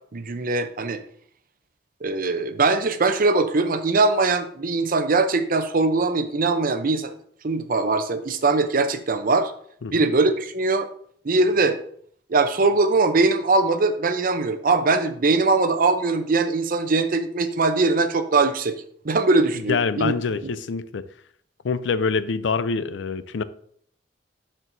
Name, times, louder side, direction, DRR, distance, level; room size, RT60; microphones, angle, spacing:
voice 1, 0.1-1.0 2.0-7.1 7.4-9.5 9.9-10.9 11.2-11.8 12.3-18.8 19.0-20.1, right 3 dB, 50° right, 0.6 m, -21 dB
voice 2, 19.7-21.1 21.6-23.4, left 5 dB, 90° left, 0.5 m, -25 dB
12.0 x 4.5 x 2.7 m
head